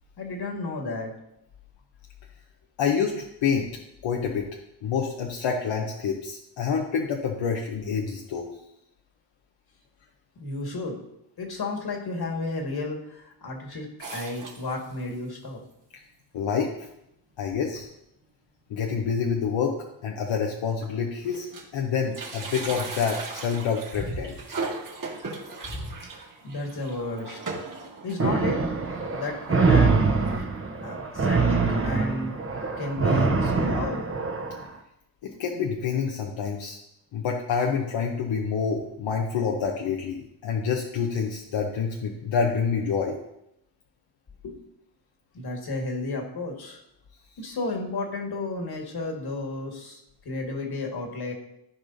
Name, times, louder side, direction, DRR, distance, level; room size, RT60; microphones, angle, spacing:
voice 1, 0.2-1.1 10.4-11.0 11.4-13.9 14.1-15.6 24.0-24.1 25.7-27.4 28.0-28.6 29.1-30.0 30.8-32.3 32.8-34.0 44.4-44.6 45.3-46.8 47.4-51.3, left 2 dB, 55° left, 1 dB, 1.8 m, -32 dB
voice 2, 2.8-3.7 4.0-8.5 15.9-16.0 16.3-16.7 17.4-17.9 18.7-19.7 20.0-21.5 21.7-24.3 35.2-36.8 37.1-43.2, left 6 dB, 80° left, 0 dB, 0.9 m, -27 dB
sound 1, 14.0-15.2 15.7-15.8 16.0-16.1 17.0-17.1 17.5-17.7 18.0-18.1 19.4-19.5 20.1-20.2 20.6-21.8 22.0-30.4, right 3 dB, 45° right, 2.2 m, -38 dB
sound 2, 28.2-34.6, right 4 dB, 30° right, 0.9 m, -24 dB
14.5 x 4.9 x 2.7 m, 0.82 s
cardioid pair, 105°, 45 cm